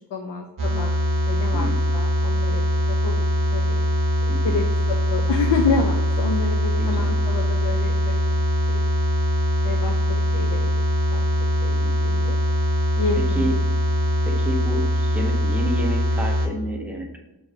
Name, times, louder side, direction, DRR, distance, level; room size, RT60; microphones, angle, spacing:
voice 1, 0.1-0.9 1.3-3.3 3.5-3.8 4.4-4.7 5.1-8.2 8.7-8.8 9.6-10.7 11.1-12.4 13.0-13.4, left 4 dB, 75° left, 3 dB, 0.5 m, -28 dB
sound 1, 0.6-16.5, equal, 50° right, 1.0 m, -22 dB
voice 2, 1.5-1.8 4.3-4.6 6.8-7.2 11.7-11.9 13.3-13.6 14.2-17.2, right 1 dB, 5° right, 1 dB, 0.5 m, -30 dB
6.5 x 3.0 x 2.6 m, 1.0 s
wide cardioid pair, 150°, 42 cm